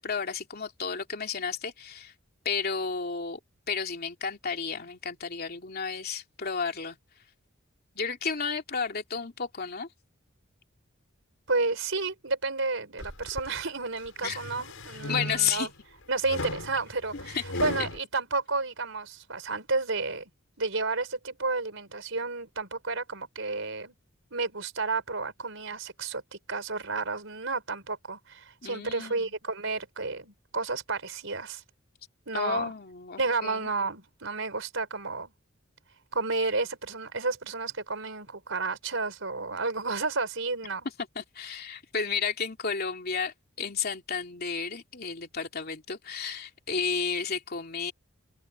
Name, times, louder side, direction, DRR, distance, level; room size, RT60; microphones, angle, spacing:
voice 1, 0.0-2.1 2.4-3.4 3.7-7.0 7.9-9.9 14.2-14.4 15.1-15.7 17.3-17.4 28.6-29.3 32.3-33.7 41.1-47.9, left 5 dB, 50° left, 2.9 m, -32 dB
voice 2, 11.5-15.7 16.1-20.3 20.6-23.9 24.3-31.6 32.3-32.7 33.2-35.3 36.1-40.9, right 3 dB, 70° right, 5.3 m, -31 dB
sound 1, 13.0-13.5 14.1-15.7 16.3-18.0, left 1 dB, 80° left, 6.2 m, -36 dB
head